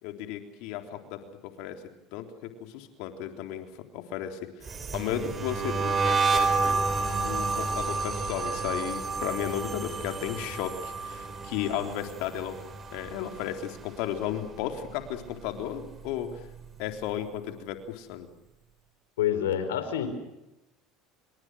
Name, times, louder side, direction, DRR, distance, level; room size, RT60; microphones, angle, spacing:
voice 1, 0.0-1.8 2.1-3.7 3.9-6.9 7.2-12.6 12.9-16.4 16.8-18.3, left 10 dB, 70° left, 5 dB, 3.5 m, -34 dB
sound 1, 4.6-13.8 14.1-14.5 14.8-16.4, right 4 dB, 30° right, 4.8 m, -30 dB
voice 2, 19.2-20.1, left 10 dB, 90° left, 10 dB, 4.7 m, -27 dB
28.0 x 25.5 x 6.3 m, 0.91 s
hypercardioid pair, 85°, 0 cm